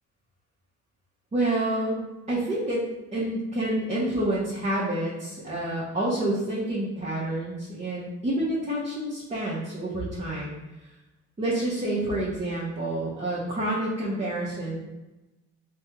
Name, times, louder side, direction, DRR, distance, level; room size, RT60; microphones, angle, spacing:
voice 1, 1.3-2.8 3.1-10.6 11.4-14.8, right 1 dB, 25° right, -8 dB, 0.9 m, -28 dB
3.4 x 2.2 x 2.9 m, 1.0 s
cardioid pair, 90°, 30 cm